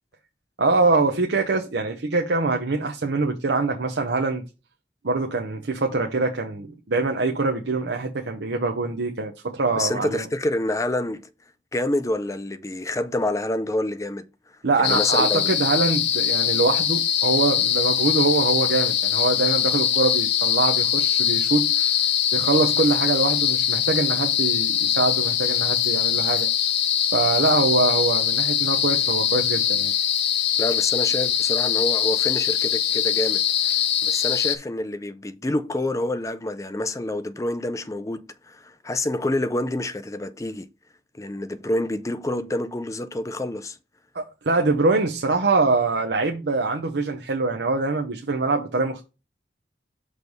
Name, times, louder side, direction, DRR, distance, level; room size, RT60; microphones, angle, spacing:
voice 1, 0.6-4.4 5.0-10.2 14.6-22.0 22.3-26.5 27.1-29.9 44.1-49.0, right 3 dB, 75° right, 0.8 m, -24 dB
voice 2, 9.8-11.3 11.7-14.2 14.8-15.5 30.6-33.7 34.0-40.7 41.2-43.8, left 1 dB, 15° left, 0.4 m, -27 dB
sound 1, 14.8-34.6, left 9 dB, 75° left, 0.7 m, -22 dB
6.2 x 3.3 x 5.4 m
head